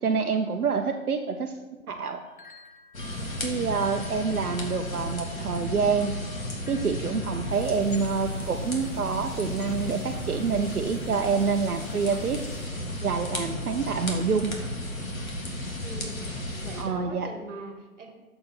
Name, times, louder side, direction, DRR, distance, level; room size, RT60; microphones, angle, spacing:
voice 1, 0.0-2.2 3.4-6.2 6.7-12.4 13.0-14.6 16.8-17.3, right 5 dB, 85° right, 4 dB, 0.6 m, -27 dB
sound 1, 2.3-12.3 12.7-13.9, left 3 dB, 40° left, 0.4 m, -54 dB
sound 2, 2.9-16.8, left 1 dB, 70° left, 1.6 m, -34 dB
sound 3, 7.5-12.7, left 1 dB, 85° left, 1.8 m, -44 dB
voice 2, 15.8-18.1, right 3 dB, 55° right, 5 dB, 1.3 m, -42 dB
6.8 x 4.1 x 5.8 m, 1.2 s
figure-of-eight pair, 140°, 43 cm